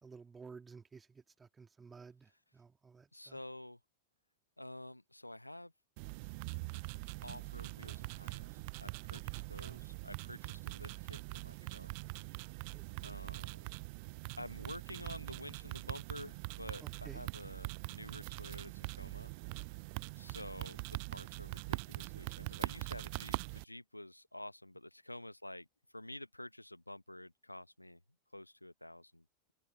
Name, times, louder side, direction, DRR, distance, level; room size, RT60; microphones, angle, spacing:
voice 1, 0.0-3.4 9.1-9.2 12.4-12.9 16.8-17.2 22.7-22.8, right 5 dB, 15° right, 2.1 m, -55 dB
voice 2, 3.1-3.8 4.6-5.7 7.2-11.9 13.0-13.7 14.4-19.3 20.2-25.7 25.9-28.0 28.3-29.2, left 1 dB, 85° left, 1.2 m, -50 dB
sound 1, 6.0-23.6, right 31 dB, 45° right, 0.5 m, -43 dB
figure-of-eight pair, 90°, 0 cm